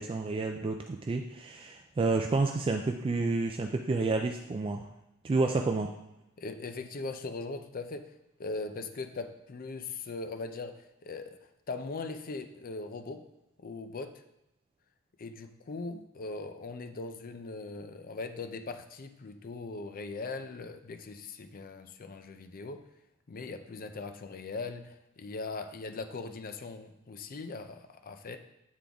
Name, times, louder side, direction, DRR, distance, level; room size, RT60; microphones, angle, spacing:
voice 1, 0.0-4.9 5.2-5.9, right 3 dB, 25° right, 4 dB, 0.3 m, -30 dB
voice 2, 6.4-8.1 8.4-11.4 11.7-13.2 13.6-14.1 15.2-22.8 23.3-28.4, left 3 dB, 40° left, 8 dB, 0.5 m, -40 dB
8.5 x 3.8 x 3.5 m, 0.91 s
head